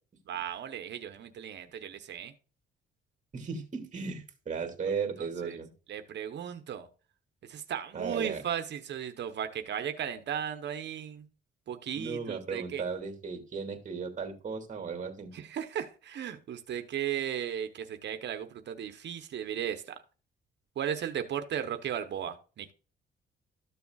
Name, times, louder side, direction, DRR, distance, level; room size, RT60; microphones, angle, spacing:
voice 1, 0.3-2.3 4.9-5.6 5.9-6.9 7.5-11.3 11.7-12.8 15.3-19.9 20.8-22.7, right 9 dB, 60° right, 0.9 m, -36 dB
voice 2, 3.3-5.7 7.9-8.4 12.0-15.3, right 5 dB, 40° right, 2.3 m, -36 dB
13.5 x 6.8 x 2.4 m
cardioid pair, 90°, 20 cm